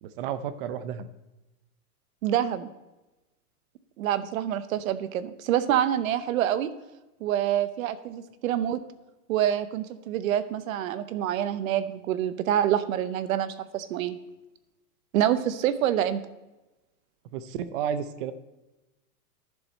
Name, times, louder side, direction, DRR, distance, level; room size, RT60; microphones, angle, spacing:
voice 1, 0.0-1.1 17.3-18.3, right 8 dB, 35° right, 13 dB, 0.6 m, -32 dB
voice 2, 2.2-2.7 4.0-6.7 7.2-8.8 9.3-14.2 15.1-16.2, right 11 dB, 60° right, 13 dB, 0.9 m, -26 dB
11.0 x 7.3 x 4.3 m, 1.0 s
supercardioid pair, 155°, 46 cm